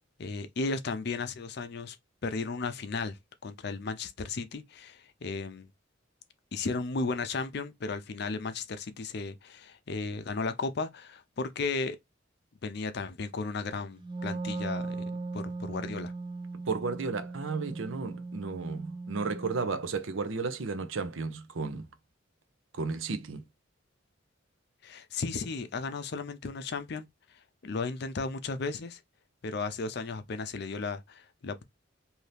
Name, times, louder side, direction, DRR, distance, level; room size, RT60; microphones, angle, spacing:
voice 1, 0.2-2.0 2.2-3.2 3.4-5.7 6.5-12.0 12.6-16.1 24.8-27.1 27.6-29.0 29.4-31.6, left 4 dB, 55° left, 0.5 m, -35 dB
Wind instrument woodwind instrument, 14.0-19.7, right 3 dB, 25° right, 0.4 m, -38 dB
voice 2, 16.7-21.9 22.7-23.4, right 4 dB, 85° right, 0.6 m, -33 dB
2.7 x 2.7 x 3.3 m
head